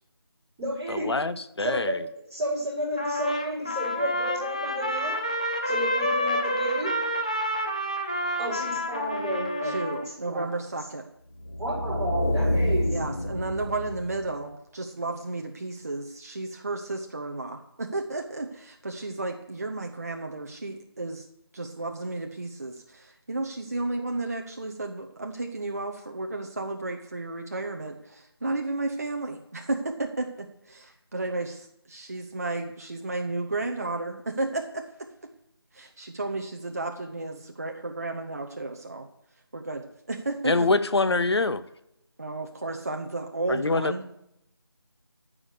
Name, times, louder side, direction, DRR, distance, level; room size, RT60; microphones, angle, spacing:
voice 1, 0.6-1.1 1.6-5.2 5.6-6.9 8.4-9.8 10.2-10.4 11.6-13.0, equal, 10° right, -19 dB, 4.7 m, -31 dB
voice 2, 1.6-1.9 40.5-41.6 43.6-43.9, left 3 dB, 75° left, 13 dB, 0.6 m, -23 dB
Trumpet, 3.0-10.1, equal, 15° left, 0.5 m, -29 dB
voice 3, 9.6-11.1 12.9-21.2 21.5-35.1 35.7-39.1 39.5-40.7 42.2-44.1, right 2 dB, 35° right, 3 dB, 0.7 m, -33 dB
sound 1, 11.4-14.3, left 1 dB, 35° left, 1.6 m, -28 dB
13.5 x 5.0 x 6.5 m, 0.78 s
figure-of-eight pair, 170°, 14 cm